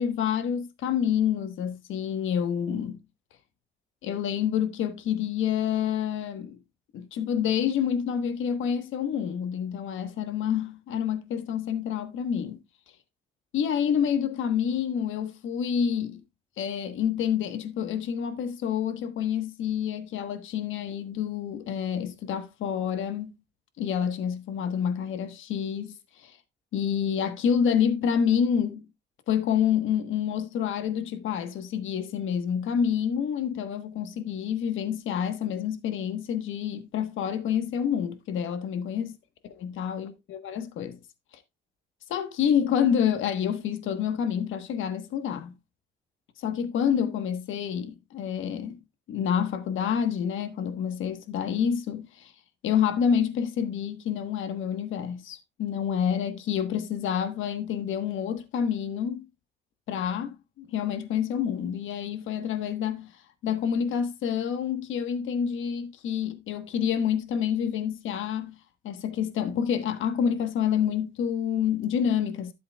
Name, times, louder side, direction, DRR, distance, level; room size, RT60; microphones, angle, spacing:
voice 1, 0.0-3.0 4.0-6.6 6.9-12.6 13.5-16.2 16.6-23.3 23.8-26.4 26.7-28.8 29.3-39.1 39.6-41.0 42.1-45.5 46.4-48.8 49.1-52.3 52.6-59.3 59.9-68.6 68.8-72.5, left 8 dB, 80° left, 1.3 m, -28 dB
12.5 x 7.8 x 2.3 m
cardioid pair, 90°, 20 cm